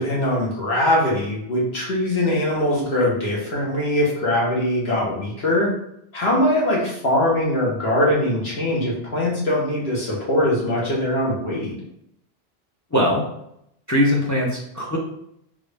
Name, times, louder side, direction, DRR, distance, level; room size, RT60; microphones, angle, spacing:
voice 1, 0.0-5.7 6.1-11.7, left 1 dB, 70° left, -5 dB, 1.4 m, -22 dB
voice 2, 12.9-13.2 13.9-15.0, left 1 dB, 25° left, -3 dB, 0.4 m, -20 dB
3.6 x 2.5 x 3.3 m, 0.76 s
omnidirectional pair, 1.1 m